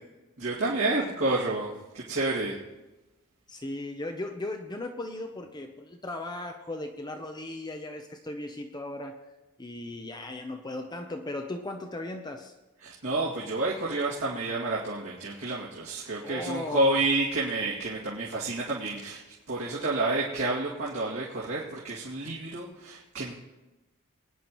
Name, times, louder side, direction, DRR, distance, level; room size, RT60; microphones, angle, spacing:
voice 1, 0.4-2.6 12.8-19.2 19.5-23.3, right 2 dB, 60° right, -8 dB, 2.4 m, -29 dB
voice 2, 3.5-9.2 9.6-12.5 16.2-16.9, left 2 dB, 20° left, 5 dB, 0.6 m, -37 dB
22.0 x 10.0 x 3.1 m, 1.1 s
head